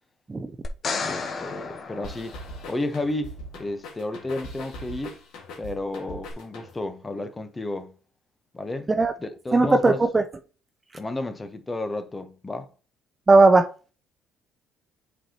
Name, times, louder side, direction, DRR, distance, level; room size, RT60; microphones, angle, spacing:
sound 1, 0.6-2.9 6.3-6.4, left 4 dB, 45° left, 0.9 m, -33 dB
voice 1, 1.0-2.4 2.7-3.3 3.6-5.2 5.6-7.9 8.5-8.9 9.2-10.0 10.9-12.7, left 2 dB, 20° left, 1.0 m, -32 dB
sound 2, 2.0-7.0, left 1 dB, 80° left, 1.8 m, -41 dB
voice 2, 9.5-10.2 13.3-13.7, right 3 dB, 25° right, 0.6 m, -17 dB
7.7 x 4.5 x 3.0 m
cardioid pair, 95°, 0 cm